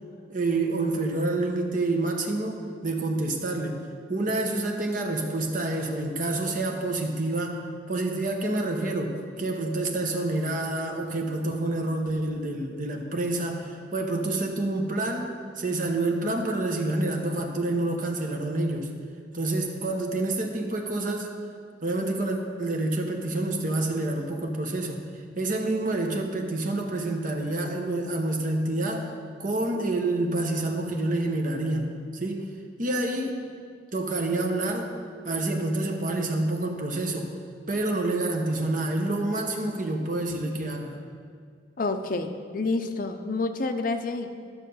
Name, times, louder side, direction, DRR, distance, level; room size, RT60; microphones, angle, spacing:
voice 1, 0.3-3.8 4.1-7.6 7.9-18.9 19.3-21.3 21.8-25.0 25.3-29.1 29.4-32.5 32.8-33.4 33.9-34.9 35.2-37.3 37.7-41.0, right 2 dB, 45° right, 2 dB, 1.1 m, -28 dB
voice 2, 41.8-44.3, left 3 dB, 45° left, 7 dB, 0.6 m, -28 dB
11.5 x 6.4 x 5.5 m, 2.1 s
head